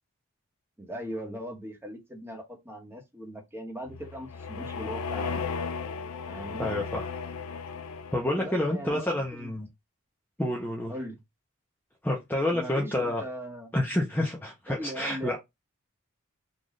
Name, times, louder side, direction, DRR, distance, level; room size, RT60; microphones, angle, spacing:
voice 1, 0.8-5.5 6.3-6.7 8.4-9.5 10.9-11.2 12.5-13.7 14.7-15.4, equal, 10° right, 1.2 m, -39 dB
sound 1, 3.9-8.5, left 5 dB, 80° left, 0.5 m, -35 dB
voice 2, 6.6-7.1 8.1-9.7 10.4-10.9 12.0-13.2 13.7-15.4, left 1 dB, 10° left, 0.7 m, -28 dB
3.9 x 2.5 x 3.1 m
head